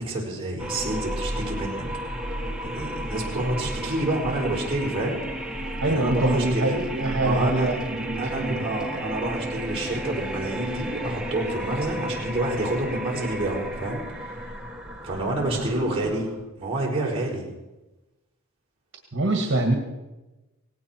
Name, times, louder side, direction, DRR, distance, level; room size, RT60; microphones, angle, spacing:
voice 1, 0.0-1.8 2.6-6.9 7.2-7.7 8.2-14.5 15.0-16.3 16.6-17.5, right 1 dB, 30° right, -3 dB, 4.8 m, -28 dB
sound 1, 0.6-16.5, right 1 dB, 5° right, 1.4 m, -33 dB
voice 2, 5.8-8.6 8.9-9.4 15.3-16.1 19.1-19.8, right 2 dB, 60° right, 3 dB, 1.9 m, -26 dB
18.5 x 17.0 x 4.6 m, 1.0 s
head